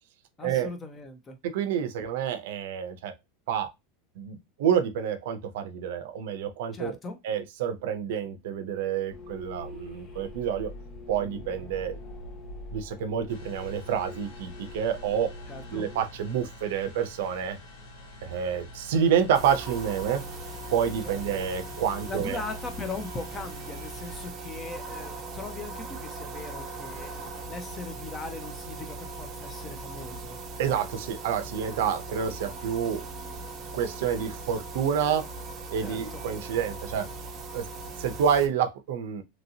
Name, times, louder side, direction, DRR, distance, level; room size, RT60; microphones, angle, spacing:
voice 1, 0.4-1.4 6.7-7.2 15.5-15.8 21.0-21.2 22.1-30.4 35.8-36.2, left 3 dB, 20° left, 0.6 m, -39 dB
voice 2, 1.4-3.1 3.5-3.7 4.2-7.0 7.2-10.7 11.1-12.0 12.7-15.3 15.7-17.6 18.2-20.2 20.7-22.4 30.6-33.0 33.7-35.2 35.7-37.1 37.5-37.7 38.0-39.2, right 8 dB, 70° right, 0.5 m, -28 dB
sound 1, 9.1-16.0, left 2 dB, 60° left, 1.6 m, -44 dB
sound 2, 13.3-24.3, left 1 dB, 80° left, 1.1 m, -46 dB
sound 3, 19.3-38.5, right 3 dB, 30° right, 0.6 m, -39 dB
3.0 x 2.7 x 2.7 m
supercardioid pair, 155°, 0 cm